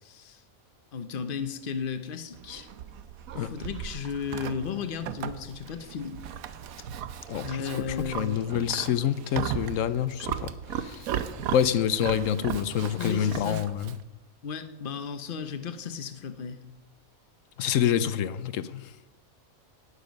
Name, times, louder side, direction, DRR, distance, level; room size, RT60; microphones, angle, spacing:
voice 1, 0.0-0.4 0.9-2.7 3.4-6.2 7.4-8.5 12.9-13.6 14.4-16.6, left 7 dB, 45° left, 0.9 m, -34 dB
Livestock farm animals working animals, 2.3-14.0, right 9 dB, 85° right, 1.2 m, -37 dB
voice 2, 7.3-11.1 11.5-14.0 17.6-18.9, left 9 dB, 70° left, 1.0 m, -27 dB
18.0 x 6.7 x 5.3 m
omnidirectional pair, 1.5 m